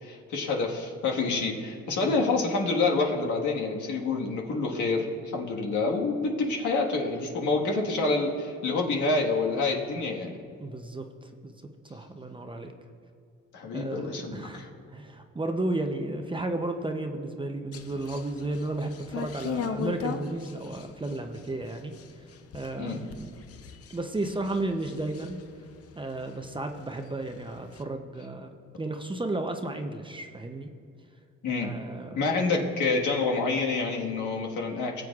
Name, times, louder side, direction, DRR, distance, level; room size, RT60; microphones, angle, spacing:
voice 1, 0.0-10.4 13.5-14.7 22.8-23.0 31.4-31.7 32.1-35.0, left 3 dB, 80° left, -1 dB, 1.6 m, -27 dB
voice 2, 10.6-11.5 11.8-12.7 13.7-22.0 22.5-23.3 23.9-25.4 26.0-30.7 31.6-32.2, right 2 dB, 15° right, 4 dB, 0.6 m, -33 dB
sound 1, 17.7-26.5 26.8-27.8, left 7 dB, 50° left, 0.7 m, -38 dB
19.5 x 7.7 x 2.4 m, 2.3 s
cardioid pair, 90°, 30 cm